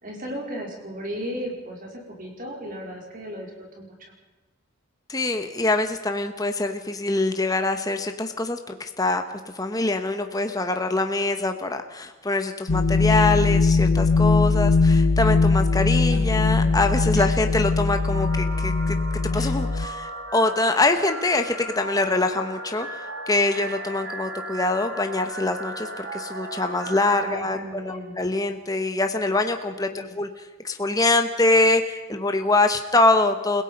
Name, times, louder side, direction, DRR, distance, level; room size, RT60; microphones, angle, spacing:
voice 1, 0.0-3.9 15.8-16.7 17.1-17.3 19.3-19.6 27.1-28.2 29.9-30.1, equal, 40° right, 0 dB, 4.6 m, -35 dB
voice 2, 5.1-9.2 9.5-18.9 19.3-27.6 27.8-33.6, left 2 dB, 15° left, 6 dB, 1.2 m, -24 dB
sound 1, 12.7-19.9, left 3 dB, 80° left, 1.0 m, -20 dB
sound 2, 18.1-27.3, right 1 dB, 60° right, 3.4 m, -36 dB
29.5 x 17.0 x 5.4 m, 1.2 s
head